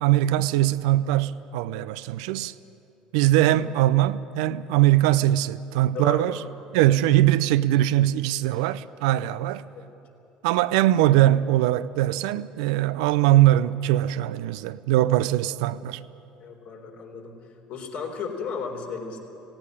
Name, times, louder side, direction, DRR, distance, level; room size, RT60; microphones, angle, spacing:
voice 1, 0.0-2.5 3.1-6.4 6.7-9.6 10.4-16.0, right 14 dB, 75° right, 0.5 m, -21 dB
voice 2, 5.9-6.4 9.7-9.9 16.4-17.4 17.7-19.2, left 5 dB, 65° left, 3.7 m, -34 dB
18.0 x 17.0 x 9.9 m
hypercardioid pair, 65°, 3 cm